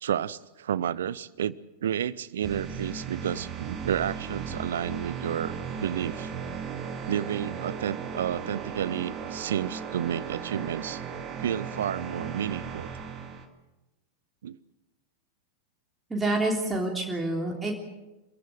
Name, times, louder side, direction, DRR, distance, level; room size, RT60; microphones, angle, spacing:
voice 1, 0.0-5.5 5.8-6.3 7.1-11.0 11.4-12.9 14.4-14.6, right 9 dB, 60° right, 21 dB, 0.7 m, -31 dB
sound 1, 2.4-13.5, right 6 dB, 30° right, 2.2 m, -36 dB
voice 2, 16.1-17.8, right 2 dB, 10° right, -1 dB, 3.4 m, -27 dB
27.5 x 16.0 x 7.9 m, 1.0 s
figure-of-eight pair, 90°, 0 cm